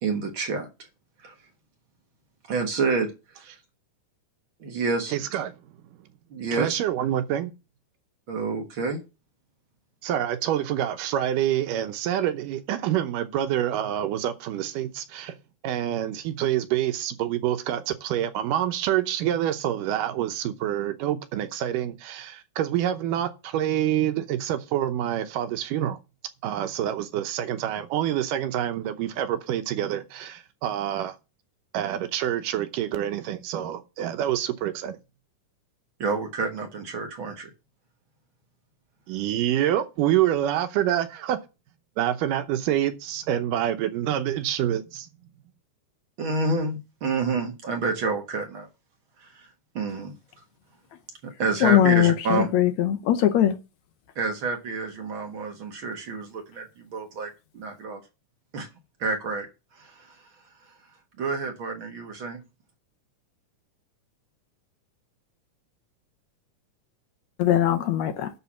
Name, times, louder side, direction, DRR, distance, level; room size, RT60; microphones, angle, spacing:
voice 1, 0.0-0.7 1.2-1.3 2.5-3.1 3.4-3.5 4.6-5.1 6.3-6.8 8.3-9.0 36.0-37.5 46.2-48.7 49.2-49.3 49.8-50.2 51.2-52.5 54.2-58.0 58.5-58.7 59.0-59.5 59.8-59.9 61.2-62.4, right 4 dB, 50° right, 1.8 m, -28 dB
voice 2, 5.1-5.5 6.5-7.5 10.0-15.4 15.6-26.0 26.4-31.2 31.7-35.0 39.1-41.4 42.0-45.1, right 11 dB, 90° right, 2.5 m, -27 dB
voice 3, 51.6-53.5 67.4-68.3, left 11 dB, 70° left, 2.0 m, -21 dB
11.5 x 3.8 x 7.2 m
omnidirectional pair, 3.7 m